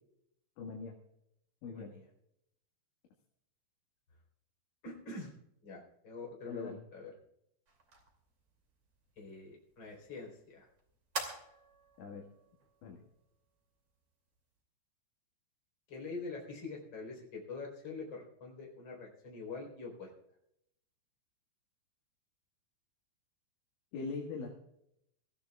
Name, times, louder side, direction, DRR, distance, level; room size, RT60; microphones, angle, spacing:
voice 1, 0.6-0.9 1.6-1.9 6.5-6.8 12.0-12.2 12.8-13.0 23.9-24.5, left 4 dB, 80° left, -1 dB, 4.1 m, -41 dB
voice 2, 1.7-2.0 4.8-5.3 5.6-7.1 9.2-10.7 15.9-20.1, left 3 dB, 25° left, -1 dB, 4.3 m, -45 dB
sound 1, 7.7-14.6, right 4 dB, 35° right, 2.9 m, -49 dB
23.5 x 15.0 x 2.4 m, 0.79 s
omnidirectional pair, 5.3 m